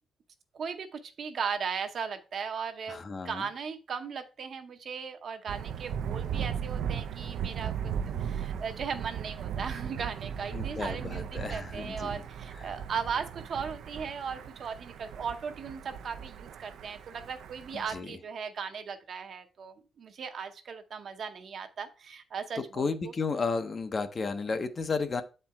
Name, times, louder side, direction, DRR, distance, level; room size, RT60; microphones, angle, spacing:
voice 1, 0.5-23.1, right 6 dB, 45° right, 0.7 m, -37 dB
voice 2, 2.9-3.5 10.5-12.1 12.6-12.7 17.7-18.1 22.6-25.2, left 4 dB, 30° left, 0.5 m, -33 dB
Thunder, 5.5-18.0, right 8 dB, 75° right, 0.4 m, -37 dB
8.5 x 4.5 x 3.4 m
wide cardioid pair, 180°, 0 cm